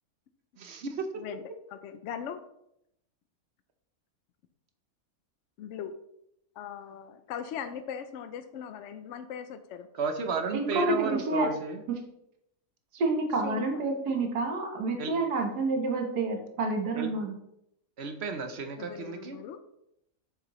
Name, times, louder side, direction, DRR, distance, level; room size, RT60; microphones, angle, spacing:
voice 1, 0.6-1.1 9.9-11.8 15.0-15.1 16.9-17.1 18.0-19.4, right 5 dB, 55° right, 6 dB, 0.8 m, -33 dB
voice 2, 1.7-2.4 5.6-5.9 6.6-9.9 13.4-13.8 18.8-19.6, left 8 dB, 70° left, 10 dB, 0.7 m, -39 dB
voice 3, 10.5-11.5 12.9-17.3, right 3 dB, 80° right, 3 dB, 1.7 m, -29 dB
7.5 x 6.5 x 3.0 m, 0.79 s
omnidirectional pair, 1.7 m